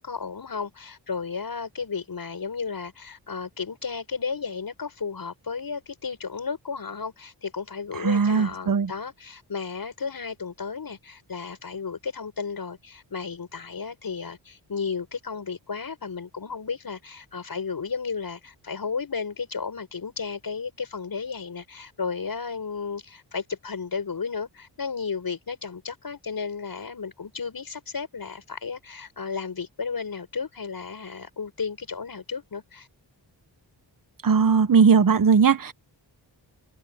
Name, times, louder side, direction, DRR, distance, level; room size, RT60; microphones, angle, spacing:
voice 1, 0.0-32.9, left 5 dB, 55° left, 7.2 m, -33 dB
voice 2, 8.0-8.9 34.2-35.7, right 6 dB, 50° right, 1.2 m, -19 dB
cardioid pair, 85°, 44 cm